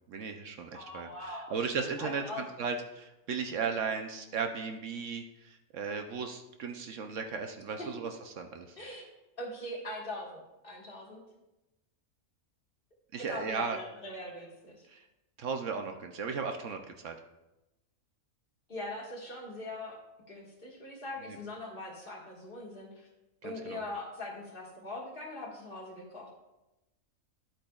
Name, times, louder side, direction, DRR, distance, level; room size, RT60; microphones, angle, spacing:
voice 1, 0.1-8.8 13.1-13.8 14.9-15.0 15.4-17.2 21.3-21.4 23.4-23.8, right 5 dB, 65° right, 5 dB, 1.0 m, -36 dB
voice 2, 0.7-1.6 2.0-2.4 7.8-7.9 8.8-9.1 9.4-11.2 13.1-14.9 18.7-20.0 20.3-23.1 23.4-26.3, left 1 dB, 40° left, -2 dB, 1.8 m, -41 dB
10.5 x 8.5 x 2.3 m, 0.98 s
omnidirectional pair, 1.5 m